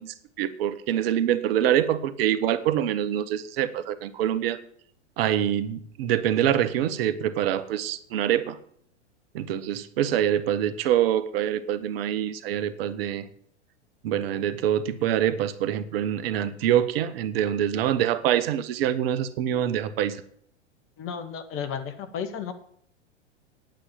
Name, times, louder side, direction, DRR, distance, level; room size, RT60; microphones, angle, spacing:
voice 1, 0.0-4.6 5.2-8.6 9.3-13.3 14.0-20.2, right 10 dB, 55° right, 14 dB, 1.1 m, -25 dB
voice 2, 21.0-22.5, left 7 dB, 35° left, 9 dB, 1.9 m, -33 dB
9.8 x 8.9 x 7.8 m, 0.64 s
hypercardioid pair, 100°, 35 cm